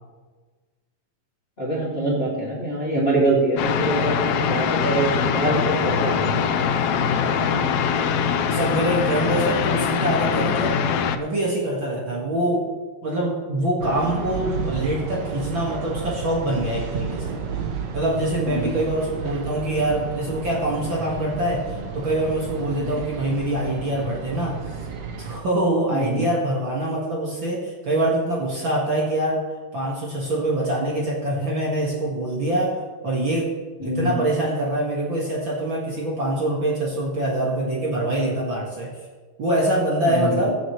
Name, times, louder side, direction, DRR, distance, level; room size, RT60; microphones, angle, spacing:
voice 1, 1.6-6.4 18.4-18.7 22.8-22.9 25.9-26.2 33.8-34.2 40.0-40.4, right 2 dB, 20° left, -6 dB, 2.4 m, -24 dB
sound 1, 3.6-11.2, left 7 dB, 75° left, 1.5 m, -22 dB
voice 2, 7.2-7.7 8.5-10.8 11.1-12.7 13.0-17.4 17.9-24.6 25.2-29.4 29.7-32.8 33.0-33.5 33.8-39.0 39.4-40.6, right 1 dB, 45° right, -4 dB, 2.4 m, -24 dB
sound 2, 13.8-25.4, right 5 dB, 80° right, 0.9 m, -32 dB
22.5 x 8.0 x 3.2 m, 1.4 s
omnidirectional pair, 3.4 m